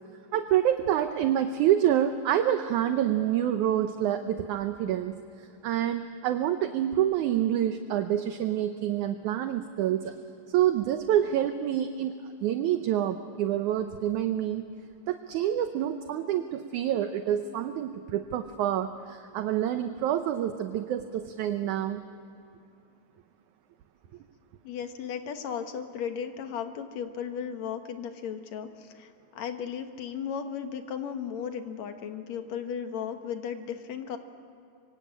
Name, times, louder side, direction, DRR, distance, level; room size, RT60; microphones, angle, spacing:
voice 1, 0.3-10.2 10.5-14.7 15.1-22.0, right 11 dB, 70° right, 8 dB, 2.1 m, -27 dB
voice 2, 24.6-34.2, left 7 dB, 60° left, 7 dB, 2.3 m, -35 dB
25.5 x 24.5 x 8.7 m, 2.7 s
omnidirectional pair, 4.0 m